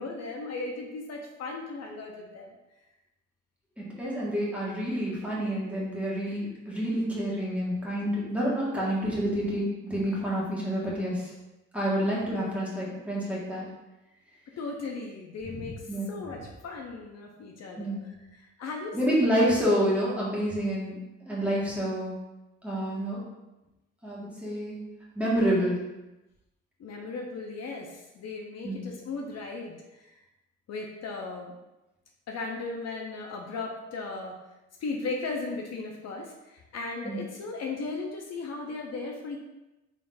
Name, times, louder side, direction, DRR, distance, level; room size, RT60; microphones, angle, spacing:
voice 1, 0.0-2.5 14.6-19.3 26.8-30.1 30.7-31.5 32.3-34.4 34.8-39.4, left 3 dB, 60° left, 1 dB, 0.6 m, -37 dB
voice 2, 3.8-11.2 11.7-13.6 15.4-15.6 15.9-16.1 17.8-18.0 18.9-21.0 21.3-22.1 22.6-23.2 24.0-24.8 25.1-25.8 28.6-28.8 37.0-37.2, equal, 5° right, -7 dB, 1.5 m, -28 dB
3.8 x 3.7 x 2.6 m, 1.0 s
cardioid pair, 90°, 30 cm